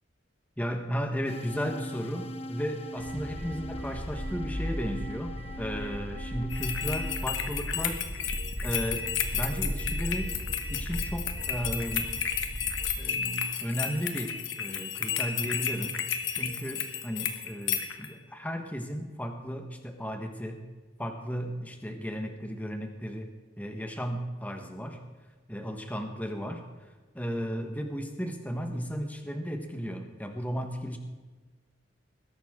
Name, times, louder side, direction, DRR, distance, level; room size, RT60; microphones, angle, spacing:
voice 1, 0.6-8.1 8.6-10.4 10.7-12.1 13.0-16.0 16.3-20.7 21.0-23.3 23.6-25.0 25.5-26.7 27.1-31.0, equal, 10° left, 4 dB, 1.2 m, -34 dB
sound 1, 1.3-7.5, left 1 dB, 35° left, 0.9 m, -42 dB
sound 2, 3.0-13.0, equal, 65° right, 2.3 m, -37 dB
sound 3, 6.5-18.1, left 8 dB, 90° left, 1.3 m, -32 dB
20.5 x 11.5 x 3.7 m, 1.3 s
head